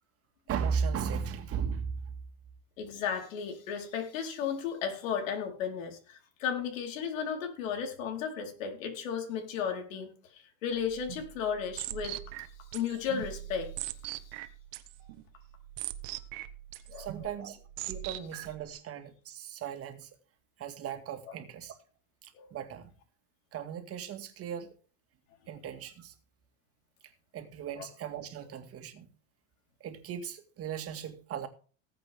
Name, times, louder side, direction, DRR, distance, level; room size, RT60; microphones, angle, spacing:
voice 1, 0.5-1.9 17.0-20.1 20.6-21.8 22.2-22.9 23.5-24.7 25.5-26.1 27.3-29.1 29.8-31.5, right 7 dB, 35° right, 2.1 m, -37 dB
voice 2, 2.8-12.2 12.7-13.7 16.9-17.1 22.3-22.5 27.8-27.9, left 7 dB, 85° left, 4.5 m, -34 dB
sound 1, 10.7-18.7, right 14 dB, 70° right, 1.4 m, -42 dB
19.0 x 7.9 x 3.7 m
supercardioid pair, 130°, 38 cm